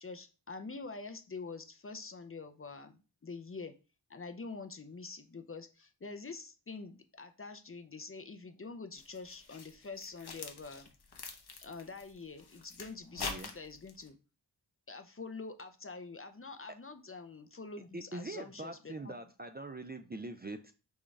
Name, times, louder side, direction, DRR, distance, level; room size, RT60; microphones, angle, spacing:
voice 1, 0.0-3.7 4.1-10.9 11.6-14.2 14.9-19.1, left 4 dB, 30° left, 7 dB, 0.5 m, -46 dB
sound 1, 8.9-14.1, left 4 dB, 60° left, 0.9 m, -45 dB
voice 2, 13.1-13.5 17.9-20.7, right 2 dB, 25° right, 7 dB, 0.4 m, -43 dB
6.3 x 2.3 x 3.2 m, 0.32 s
cardioid pair, 45°, 44 cm